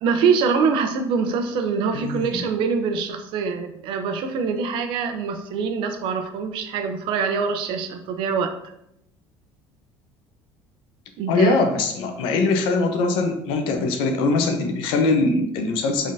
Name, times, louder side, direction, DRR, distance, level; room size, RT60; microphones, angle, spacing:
voice 1, 0.0-8.5 11.2-11.6, right 5 dB, 70° right, 7 dB, 0.6 m, -24 dB
voice 2, 1.9-2.3 11.3-16.1, left 3 dB, 75° left, 5 dB, 0.8 m, -22 dB
5.3 x 3.6 x 2.7 m, 0.78 s
cardioid pair, 120°, 9 cm